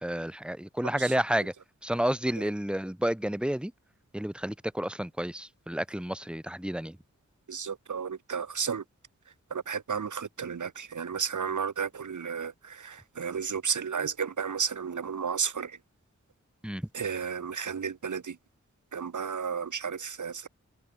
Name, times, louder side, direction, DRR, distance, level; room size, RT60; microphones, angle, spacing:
voice 1, 0.0-1.5 1.8-3.7 4.1-7.0 16.6-16.9, right 1 dB, 5° right, 1.7 m, -30 dB
voice 2, 7.5-8.8 9.5-15.8 16.9-18.4 18.9-20.5, right 6 dB, 90° right, 1.4 m, -33 dB
wide cardioid pair, 65°, 29 cm